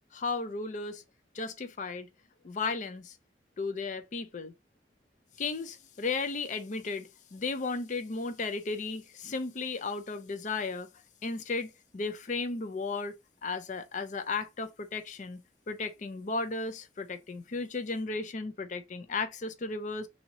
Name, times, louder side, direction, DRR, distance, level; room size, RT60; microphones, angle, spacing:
voice 1, 0.1-1.0 1.3-2.1 2.4-3.2 3.6-4.5 5.4-10.9 11.2-13.1 13.4-15.4 15.7-20.1, left 3 dB, 45° left, 0.5 m, -35 dB
2.9 x 2.8 x 2.6 m
head